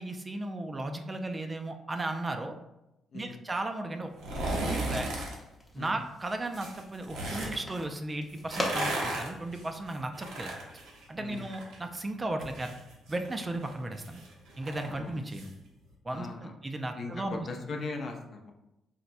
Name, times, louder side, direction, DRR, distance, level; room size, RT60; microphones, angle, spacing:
voice 1, 0.0-2.5 3.1-4.1 4.6-5.1 5.7-10.5 11.1-12.8 13.1-14.2 14.6-15.5 16.0-17.5, right 2 dB, 25° right, 6 dB, 0.3 m, -35 dB
sound 1, 4.1-5.4 6.5-7.6 8.3-11.8 12.1-15.5 15.9-16.0, right 1 dB, 85° right, 0.7 m, -36 dB
sound 2, 5.3-10.5, left 1 dB, 15° left, 0.7 m, -41 dB
voice 2, 16.1-16.5 16.9-18.5, left 3 dB, 55° left, 3 dB, 0.5 m, -39 dB
4.1 x 2.2 x 2.5 m, 0.92 s
cardioid pair, 90°, 0 cm